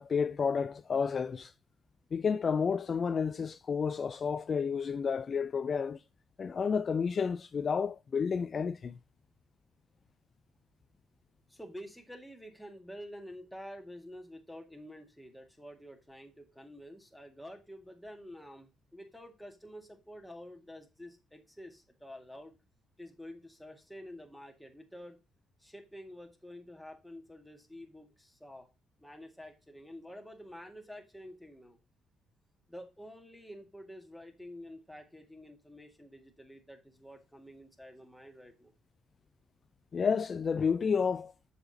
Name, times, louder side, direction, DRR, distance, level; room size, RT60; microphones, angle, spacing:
voice 1, 0.0-1.5 2.1-6.0 6.4-9.0 39.9-41.5, left 6 dB, 45° left, 0.4 m, -31 dB
voice 2, 11.5-22.6 23.0-25.2 25.6-28.7 29.0-31.8 32.7-38.7, equal, 5° left, 1.9 m, -49 dB
7.0 x 5.8 x 4.1 m
cardioid pair, 90°, 0 cm